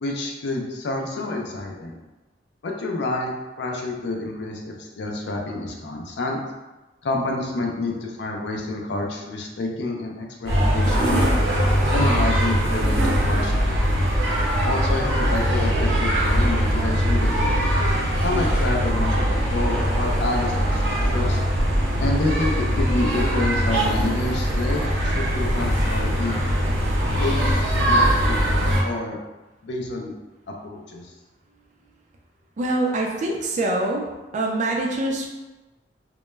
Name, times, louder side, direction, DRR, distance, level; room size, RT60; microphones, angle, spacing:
voice 1, 0.0-2.0 2.6-3.3 3.6-6.4 7.0-11.4 11.9-13.8 14.6-17.7 18.2-21.4 22.0-26.4 27.2-29.2 29.6-30.1 30.6-31.1, left 2 dB, 65° left, 0 dB, 0.4 m, -28 dB
sound 1, 10.4-28.8, equal, 65° right, 0.7 m, -21 dB
voice 2, 32.6-34.1 34.3-35.3, right 2 dB, 40° right, 0 dB, 0.4 m, -24 dB
2.2 x 2.0 x 3.1 m, 1.1 s
head